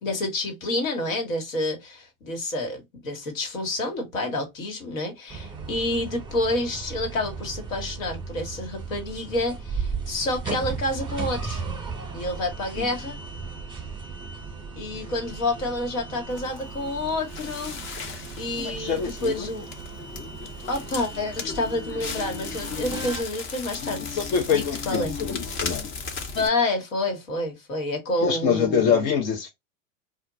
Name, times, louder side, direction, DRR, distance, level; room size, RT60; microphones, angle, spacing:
voice 1, 0.0-11.6 12.1-13.2 14.7-17.8 18.4-19.7 20.7-25.2 26.3-29.1, left 2 dB, 80° left, 1.4 m, -29 dB
sound 1, 5.3-23.2, right 4 dB, 10° right, 0.9 m, -36 dB
Crackle, 16.3-26.5, left 5 dB, 30° left, 0.7 m, -36 dB
voice 2, 18.6-19.5 24.2-25.9 28.2-29.5, left 7 dB, 60° left, 0.9 m, -25 dB
2.4 x 2.2 x 3.8 m
hypercardioid pair, 95°, 40 cm